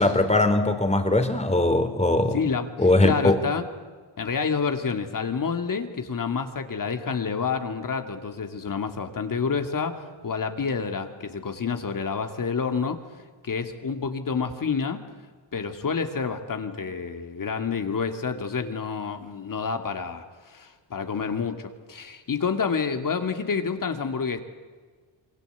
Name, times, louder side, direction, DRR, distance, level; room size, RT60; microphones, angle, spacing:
voice 1, 0.0-2.4 2.8-3.4, left 2 dB, 15° left, 8 dB, 3.2 m, -20 dB
voice 2, 2.3-3.6 4.2-13.0 13.4-15.0 15.5-24.4, left 5 dB, 45° left, 6 dB, 2.5 m, -28 dB
27.5 x 22.5 x 8.2 m, 1.5 s
cardioid pair, 100°, 46 cm